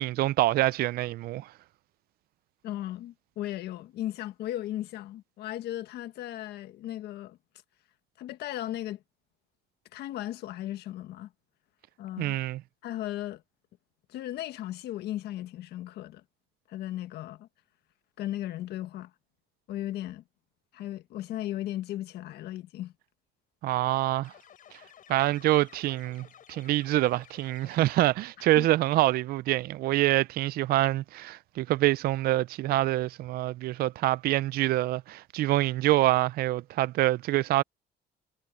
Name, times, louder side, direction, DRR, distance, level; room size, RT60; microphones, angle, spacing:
voice 1, 0.0-1.5 12.2-12.6 23.6-24.3 25.1-37.6, right 16 dB, 65° right, 0.4 m, -26 dB
voice 2, 2.6-7.4 8.2-9.0 9.9-11.3 12.0-12.4 12.8-13.4 14.1-16.2 16.7-17.5 18.2-19.1 19.7-20.2 20.7-22.9 28.4-28.7, left 13 dB, 75° left, 1.7 m, -36 dB
sound 1, 24.2-28.4, left 9 dB, 55° left, 6.2 m, -54 dB
cardioid pair, 110°, 17 cm